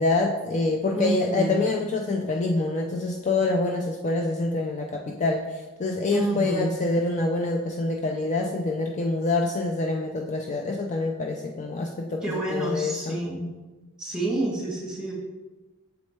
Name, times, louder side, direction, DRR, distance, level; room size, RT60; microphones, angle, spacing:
voice 1, 0.0-13.2, left 3 dB, 30° left, 1 dB, 0.4 m, -26 dB
voice 2, 0.9-1.6 6.1-6.7 12.2-13.5 14.0-15.1, right 2 dB, 5° right, -6 dB, 1.7 m, -28 dB
7.0 x 4.1 x 3.3 m, 1.2 s
head